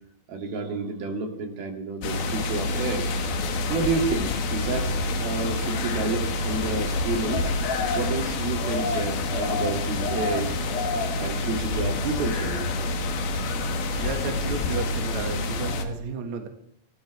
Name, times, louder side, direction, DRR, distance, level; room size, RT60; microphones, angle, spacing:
voice 1, 0.3-3.1 3.7-7.5 8.0-10.5 11.2-12.9, right 4 dB, 70° right, 2 dB, 4.4 m, -30 dB
sound 1, 2.0-15.8, left 2 dB, 70° left, 3.5 m, -27 dB
voice 2, 13.9-16.5, right 5 dB, 55° right, 4 dB, 2.7 m, -33 dB
25.5 x 14.0 x 3.4 m, 0.71 s
omnidirectional pair, 4.5 m